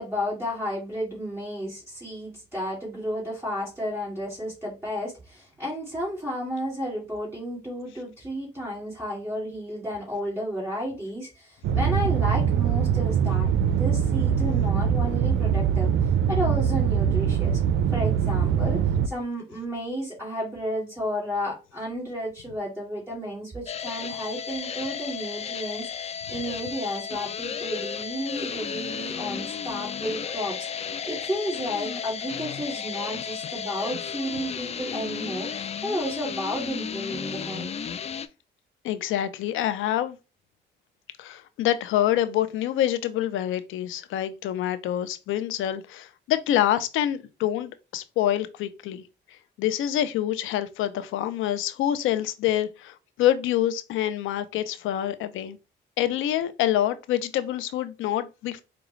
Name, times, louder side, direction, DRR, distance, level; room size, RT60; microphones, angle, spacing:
voice 1, 0.0-15.9 16.3-17.6 17.9-37.7, equal, 10° right, 2.1 m, -32 dB
sound 1, 11.6-19.1, right 8 dB, 70° right, 0.5 m, -23 dB
sound 2, 23.7-38.3, left 7 dB, 35° left, 0.4 m, -33 dB
voice 2, 38.8-40.2 41.2-49.0 49.6-55.6 56.0-58.6, left 12 dB, 85° left, 0.5 m, -26 dB
4.9 x 2.3 x 3.1 m
cardioid pair, 90°, 20 cm